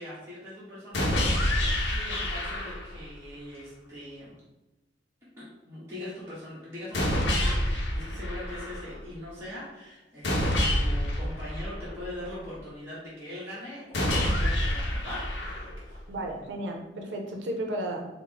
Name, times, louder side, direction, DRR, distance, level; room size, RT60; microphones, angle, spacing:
voice 1, 0.0-4.4 5.6-16.1, left 1 dB, 15° right, -10 dB, 1.0 m, -42 dB
sound 1, 0.9-3.0 6.9-9.0 10.2-12.3 13.9-16.0, left 1 dB, 80° left, 0.7 m, -27 dB
voice 2, 16.1-18.1, right 1 dB, 80° right, 2 dB, 0.5 m, -33 dB
4.5 x 2.0 x 3.8 m, 1.1 s
head